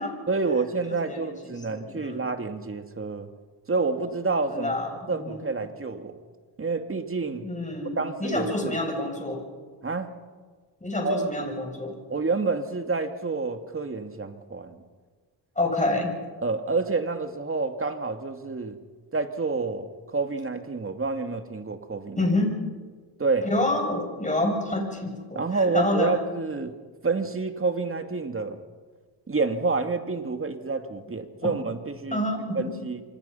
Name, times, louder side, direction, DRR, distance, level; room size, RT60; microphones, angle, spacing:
voice 1, 0.3-3.3 3.7-4.7 5.1-6.2 6.6-7.5 8.0-8.8 9.8-10.1 11.0-11.5 12.1-14.8 16.4-18.8 19.1-22.3 23.2-23.5 25.3-26.7 27.0-28.6 29.3-32.2 32.5-33.0, right 4 dB, 30° right, 7 dB, 2.4 m, -28 dB
voice 2, 0.9-2.3 4.5-5.5 7.4-9.4 10.8-12.0 15.6-16.1 22.2-22.6 23.4-26.2 32.1-32.6, left 2 dB, 15° left, 2 dB, 7.6 m, -28 dB
28.0 x 25.0 x 5.7 m, 1.5 s
cardioid pair, 80°, 45 cm